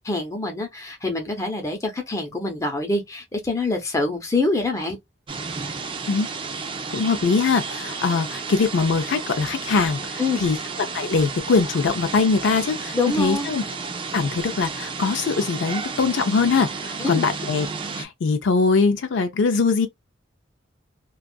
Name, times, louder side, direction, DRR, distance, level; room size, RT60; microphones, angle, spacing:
voice 1, 0.0-5.0 10.2-10.4 12.9-13.5 17.0-17.3, left 2 dB, 15° left, 0.7 m, -25 dB
sound 1, 5.3-18.1, right 4 dB, 25° right, 0.4 m, -32 dB
voice 2, 6.9-10.6 10.9-13.6 14.1-17.7 18.0-19.9, left 4 dB, 65° left, 0.4 m, -22 dB
2.6 x 2.3 x 2.2 m
head